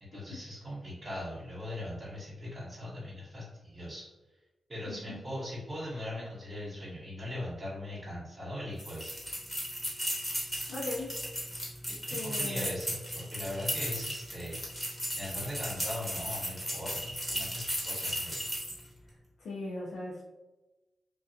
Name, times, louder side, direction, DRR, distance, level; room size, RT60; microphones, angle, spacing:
voice 1, 0.0-4.1 4.7-9.1 11.9-14.6 15.2-18.4, left 1 dB, 45° right, -9 dB, 1.0 m, -40 dB
voice 2, 4.9-5.2 10.7-11.1 12.1-12.8 19.4-20.2, left 2 dB, 85° left, -6 dB, 0.5 m, -38 dB
sound 1, 8.8-18.9, equal, 5° left, 1.0 m, -36 dB
2.3 x 2.2 x 2.6 m, 1.1 s
cardioid pair, 70°, 0 cm